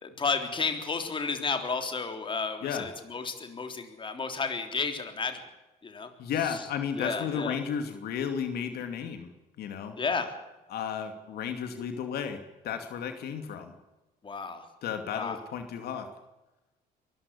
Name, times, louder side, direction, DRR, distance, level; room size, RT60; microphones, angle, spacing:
voice 1, 0.0-5.4 5.8-6.1 6.5-6.6 7.0-7.6 10.0-10.3 14.2-14.7 15.1-15.4, left 4 dB, 30° left, 7 dB, 3.5 m, -32 dB
voice 2, 6.2-9.3 9.6-10.0 10.7-13.7 14.8-16.1, left 7 dB, 70° left, 7 dB, 2.6 m, -33 dB
23.0 x 14.5 x 8.5 m, 1.0 s
cardioid pair, 110°, 17 cm